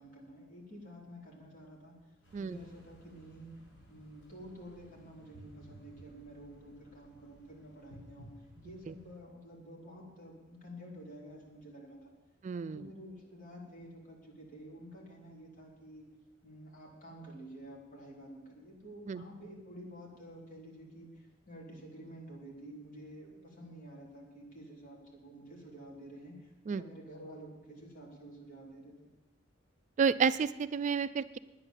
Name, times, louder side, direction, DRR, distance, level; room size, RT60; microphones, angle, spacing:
voice 1, 0.0-1.9 2.4-3.5 3.9-8.3 8.6-12.1 12.5-16.0 16.4-28.9, equal, 45° left, -2 dB, 3.6 m, -50 dB
sound 1, 2.2-9.2, right 1 dB, 85° left, 4.9 m, -57 dB
voice 2, 12.4-12.8 19.1-19.2 26.7-26.8 30.0-31.4, right 6 dB, 40° right, 14 dB, 0.3 m, -30 dB
9.7 x 9.7 x 7.3 m, 1.0 s
head